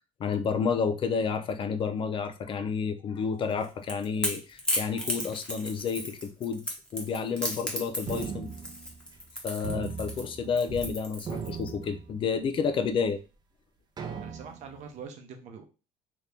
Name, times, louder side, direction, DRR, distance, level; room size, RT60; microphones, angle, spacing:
voice 1, 0.2-6.7 6.9-8.5 9.4-13.2, left 6 dB, 40° left, 8 dB, 0.4 m, -30 dB
Crackle / Crack, 3.5-11.7, equal, 5° left, 1.0 m, -34 dB
sound 1, 8.1-9.3 9.6-10.9 11.2-12.5 13.1-13.2 14.0-14.8, right 6 dB, 30° right, 0.6 m, -38 dB
voice 2, 14.2-15.6, right 6 dB, 60° right, 5 dB, 0.8 m, -44 dB
2.9 x 2.6 x 3.4 m, 0.32 s
cardioid pair, 115°, 14 cm